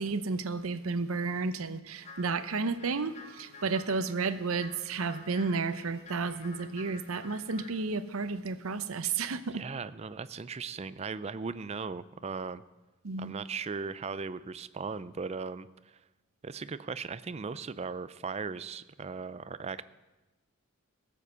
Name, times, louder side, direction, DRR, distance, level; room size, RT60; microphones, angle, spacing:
voice 1, 0.0-9.6 13.0-13.3, right 4 dB, 75° right, 12 dB, 0.7 m, -32 dB
sound 1, 2.0-7.8, left 3 dB, 30° left, 1.1 m, -51 dB
voice 2, 9.5-12.6 13.2-15.7 16.4-19.8, right 5 dB, 30° right, 15 dB, 0.4 m, -38 dB
16.5 x 7.4 x 6.8 m, 1.1 s
head